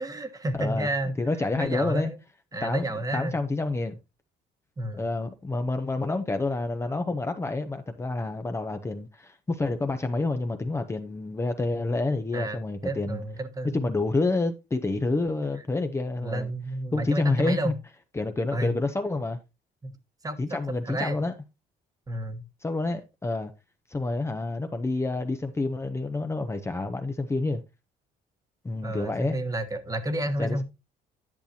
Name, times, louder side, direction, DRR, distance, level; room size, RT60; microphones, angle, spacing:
voice 1, 0.0-1.1 1.6-2.2 2.5-3.4 4.8-5.1 12.3-12.6 12.8-13.9 16.2-17.8 18.5-18.7 19.8-19.9 20.2-20.6 20.8-21.2 22.1-22.4 28.8-30.6, right 1 dB, 20° right, 1.3 m, -31 dB
voice 2, 0.5-0.9 1.2-2.1 2.6-4.0 4.9-13.2 13.7-16.5 16.9-17.7 18.1-19.4 20.4-21.3 22.6-23.5 23.9-27.6 28.6-29.4 30.4-30.6, left 2 dB, 15° left, 0.8 m, -28 dB
10.5 x 6.8 x 2.8 m
cardioid pair, 110°, 17 cm